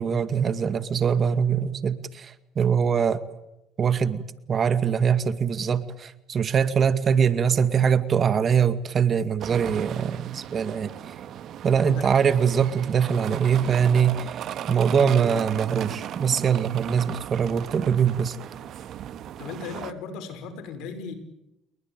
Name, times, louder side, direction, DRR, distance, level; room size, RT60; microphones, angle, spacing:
voice 1, 0.0-3.2 3.8-10.9 11.6-14.4 14.7-18.4, right 7 dB, 40° right, 12 dB, 2.0 m, -23 dB
sound 1, 9.4-19.9, right 10 dB, 60° right, 1.7 m, -37 dB
voice 2, 11.8-12.2 19.4-21.1, left 5 dB, 75° left, 10 dB, 5.6 m, -36 dB
29.5 x 22.0 x 9.1 m, 0.90 s
supercardioid pair, 85°, 0 cm